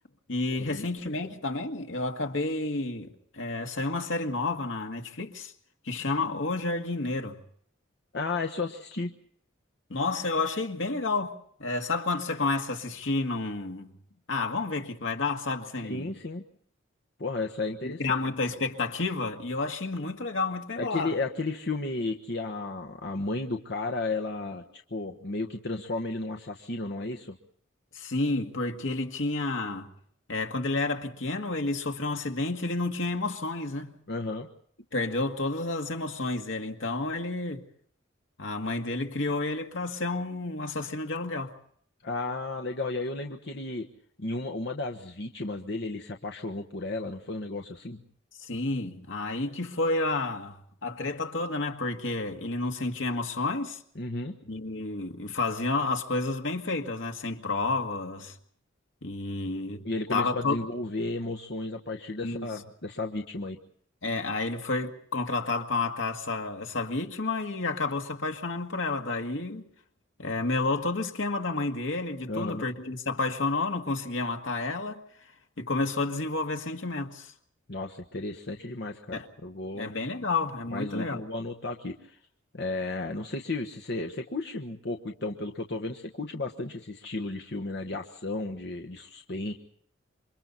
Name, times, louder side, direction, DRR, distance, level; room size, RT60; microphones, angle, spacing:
voice 1, 0.3-5.5 5.9-7.4 9.9-13.9 14.3-16.1 17.8-21.2 27.9-29.9 30.3-34.0 34.9-37.6 38.4-41.5 48.4-53.8 54.5-58.4 59.0-60.6 62.2-62.5 64.0-69.7 70.2-75.0 75.6-77.3 79.1-79.3 79.7-81.2, left 3 dB, 80° left, 2.0 m, -30 dB
voice 2, 8.1-9.1 15.8-16.4 17.2-18.2 20.8-27.4 34.1-34.5 42.0-43.9 44.2-48.0 53.9-54.3 59.8-63.6 72.3-72.7 77.7-79.9 80.7-82.2 82.5-89.5, left 2 dB, 60° left, 1.3 m, -33 dB
28.0 x 24.5 x 4.2 m
head